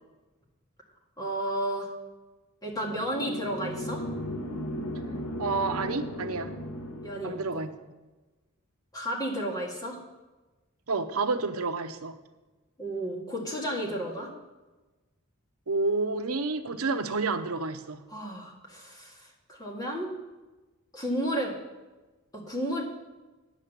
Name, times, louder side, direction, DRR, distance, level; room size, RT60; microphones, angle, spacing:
voice 1, 1.2-1.9 2.6-4.0 7.0-7.6 8.9-10.0 12.8-14.3 18.1-20.1 20.9-21.5 22.3-22.8, right 1 dB, 20° left, -2 dB, 1.9 m, -32 dB
sound 1, 2.7-7.6, equal, 85° left, 1.6 m, -36 dB
voice 2, 5.4-6.5 7.2-7.7 10.9-12.2 15.7-18.0, right 3 dB, 85° right, 8 dB, 0.8 m, -29 dB
9.2 x 7.4 x 6.7 m, 1.2 s
head